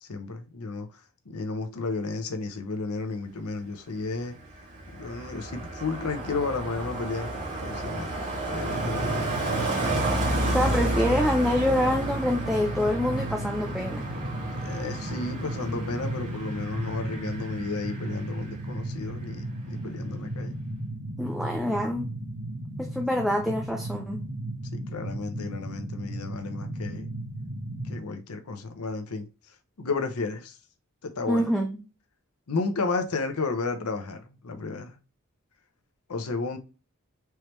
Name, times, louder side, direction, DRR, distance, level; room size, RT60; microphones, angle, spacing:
voice 1, 0.0-0.9 1.3-4.4 5.0-8.1 8.5-9.3 14.6-20.6 24.7-27.1 27.9-29.2 29.8-30.6 31.0-31.4 32.5-35.0 36.1-36.6, left 3 dB, 90° left, 0.8 m, -32 dB
Car passing by, 4.0-18.8 19.1-19.4, right 1 dB, 35° right, 2.5 m, -32 dB
sound 1, 8.7-28.0, right 1 dB, 60° right, 1.9 m, -35 dB
voice 2, 10.5-14.1 21.2-22.1 22.8-24.2 31.3-31.8, left 1 dB, ahead, 0.5 m, -26 dB
4.6 x 3.3 x 3.0 m
head